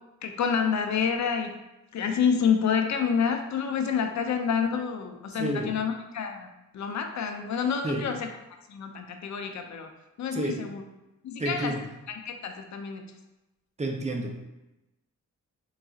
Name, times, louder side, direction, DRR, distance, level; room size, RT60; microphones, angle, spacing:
voice 1, 0.2-1.5 1.9-6.5 6.7-8.3 8.7-9.9 10.2-10.8 11.2-11.7 12.2-13.1, left 6 dB, 60° left, 5 dB, 0.5 m, -28 dB
voice 2, 5.3-5.7 7.8-8.1 10.3-10.6 11.4-11.8 13.8-14.4, right 1 dB, 20° right, 1 dB, 0.4 m, -30 dB
3.9 x 2.6 x 2.3 m, 0.97 s
wide cardioid pair, 105°, 32 cm